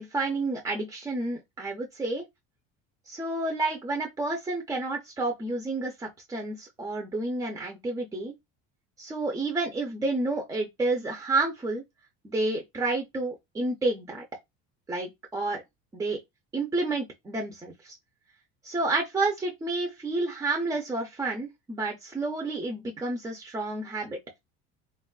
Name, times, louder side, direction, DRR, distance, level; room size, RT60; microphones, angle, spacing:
voice 1, 0.0-2.2 3.1-8.3 9.0-11.8 12.2-14.2 14.9-15.6 15.9-16.2 16.5-18.0 18.6-24.2, right 2 dB, 10° right, 0.4 m, -30 dB
3.2 x 2.2 x 2.2 m
cardioid pair, 140°, 30 cm